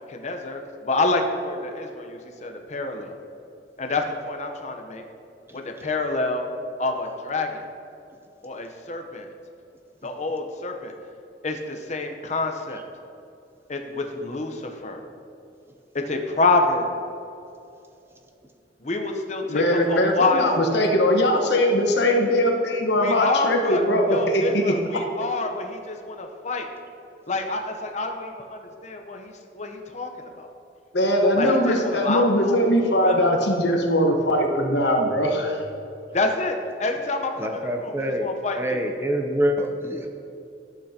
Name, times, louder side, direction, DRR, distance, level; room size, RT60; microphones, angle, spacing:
voice 1, 0.1-3.2 3.8-5.0 5.5-6.5 6.8-7.6 8.4-9.3 10.0-10.9 11.4-12.8 13.7-15.0 16.1-17.0 18.8-20.4 23.0-23.8 24.1-26.7 27.3-30.5 31.3-32.7 33.0-33.2 36.1-38.8, left 3 dB, 40° left, 4 dB, 0.8 m, -27 dB
voice 2, 19.5-24.8 30.9-35.6, left 1 dB, 70° left, 2 dB, 1.1 m, -21 dB
voice 3, 37.4-38.3 38.6-40.1, equal, 15° right, 4 dB, 0.5 m, -26 dB
12.0 x 8.3 x 2.8 m, 2.7 s
head